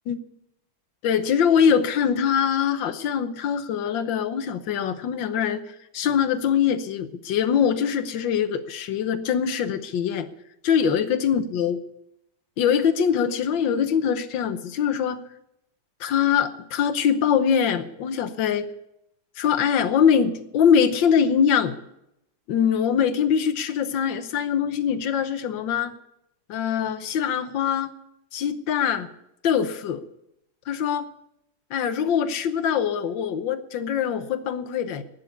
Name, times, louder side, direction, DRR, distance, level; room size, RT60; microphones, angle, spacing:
voice 1, 1.0-5.6 5.9-10.3 10.6-11.8 12.6-15.2 16.0-18.7 19.4-21.8 22.5-25.9 26.5-27.9 28.3-29.1 29.4-30.0 30.7-31.1 31.7-35.0, left 7 dB, 80° left, 11 dB, 1.7 m, -23 dB
11.5 x 9.6 x 9.6 m, 0.82 s
omnidirectional pair, 2.0 m